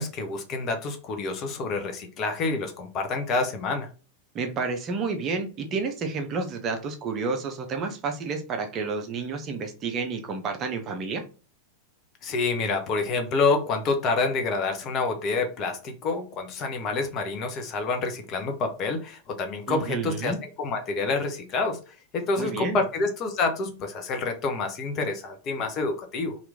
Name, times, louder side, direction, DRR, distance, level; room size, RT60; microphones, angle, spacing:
voice 1, 0.0-3.9 12.2-21.8 22.1-26.4, left 3 dB, 35° left, 5 dB, 0.7 m, -28 dB
voice 2, 4.3-11.2 19.7-20.4 22.4-22.8, right 4 dB, 30° right, 4 dB, 0.7 m, -30 dB
2.9 x 2.4 x 3.4 m, 0.35 s
figure-of-eight pair, 90°, 0 cm